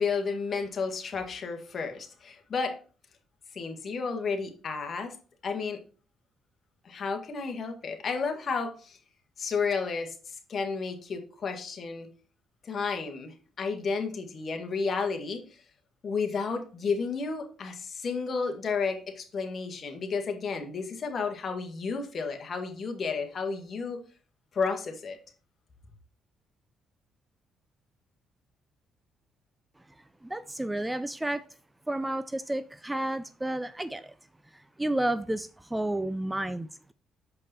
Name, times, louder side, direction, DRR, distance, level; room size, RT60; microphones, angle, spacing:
voice 1, 0.0-2.8 3.5-5.2 5.4-5.8 6.8-9.0 9.4-12.1 12.6-15.6 16.0-24.0 24.5-25.2, left 5 dB, 45° left, 1.8 m, -32 dB
voice 2, 30.2-31.5 31.9-34.1 34.5-36.9, right 1 dB, 10° right, 0.5 m, -31 dB
6.9 x 5.2 x 4.3 m
cardioid pair, 85°, 0 cm